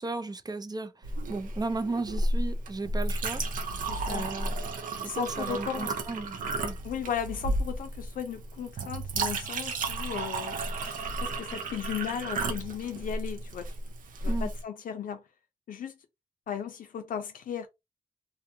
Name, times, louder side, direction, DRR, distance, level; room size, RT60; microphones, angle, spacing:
voice 1, 0.0-3.4 4.1-4.6 5.0-6.8 14.2-14.5, right 3 dB, 30° right, 0.5 m, -35 dB
Chink clink, 1.0-14.6, right 2 dB, 90° right, 0.5 m, -33 dB
voice 2, 3.9-4.3 5.1-5.9 6.8-10.6 11.2-13.7 14.2-15.2 15.7-15.9 16.5-17.7, left 8 dB, 90° left, 0.5 m, -35 dB
2.6 x 2.2 x 2.7 m
cardioid pair, 50°, 14 cm